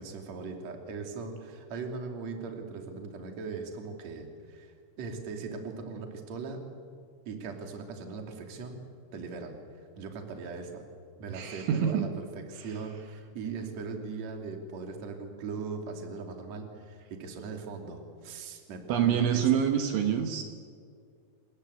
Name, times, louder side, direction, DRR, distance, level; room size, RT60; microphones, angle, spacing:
voice 1, 0.0-6.6 7.2-8.8 9.1-10.8 11.2-19.4, right 4 dB, 40° right, 3 dB, 3.2 m, -39 dB
voice 2, 11.3-12.1 18.9-20.4, right 9 dB, 70° right, 5 dB, 3.6 m, -26 dB
28.0 x 21.5 x 8.2 m, 2.2 s
omnidirectional pair, 6.0 m